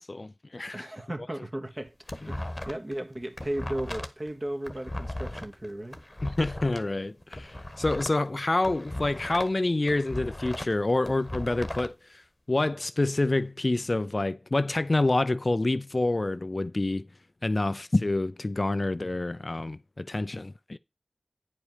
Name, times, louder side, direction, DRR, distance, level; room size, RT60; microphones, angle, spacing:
voice 1, 0.0-0.9 6.2-12.2 12.5-17.1 17.4-20.8, left 2 dB, 45° left, 0.4 m, -27 dB
voice 2, 0.7-1.9 2.3-6.0, right 1 dB, 35° right, 1.8 m, -35 dB
sound 1, 1.7-2.9 3.2-6.8 7.2-9.6 9.9-11.9, left 1 dB, 25° left, 1.2 m, -37 dB
9.6 x 5.1 x 4.9 m
wide cardioid pair, 50°, 0 cm